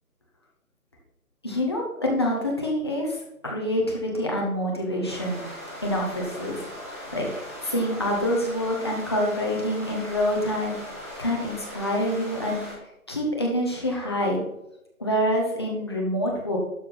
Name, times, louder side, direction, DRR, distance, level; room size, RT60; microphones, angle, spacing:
voice 1, 1.4-5.4 5.8-6.7 7.1-7.3 7.6-10.8 11.2-12.7 13.1-14.4 15.0-16.6, equal, 20° left, -1 dB, 1.1 m, -26 dB
sound 1, 5.1-12.7, equal, 10° right, 1.0 m, -39 dB
12.0 x 4.4 x 5.5 m, 0.87 s
hypercardioid pair, 175°, 44 cm